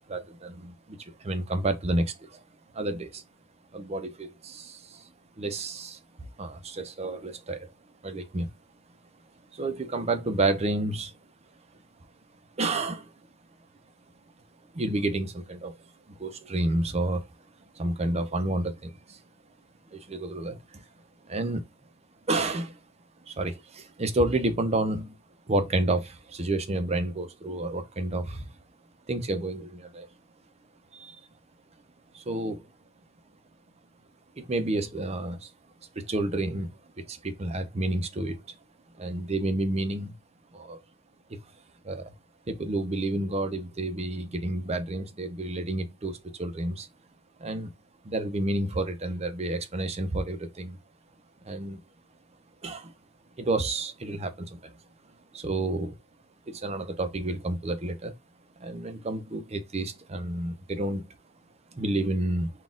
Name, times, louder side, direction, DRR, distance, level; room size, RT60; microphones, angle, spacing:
voice 1, 0.1-2.4 2.7-3.2 3.7-5.1 5.4-6.0 6.4-7.7 8.0-8.5 9.5-11.1 12.6-13.1 14.7-15.7 16.1-17.2 17.8-19.2 19.9-20.8 21.3-21.6 22.3-22.8 23.3-25.2 25.5-28.5 29.1-30.1 30.9-31.2 32.1-32.6 34.4-35.5 36.0-36.7 37.0-38.4 39.0-40.1 40.5-40.8 41.3-41.4 41.8-42.1 42.5-46.9 47.4-47.7 48.0-50.8 51.4-51.8 52.6-52.9 53.4-54.7 55.3-55.9 56.5-58.1 58.6-61.0 61.7-62.5, right 2 dB, 30° right, 0.6 m, -30 dB
4.0 x 2.4 x 3.6 m
head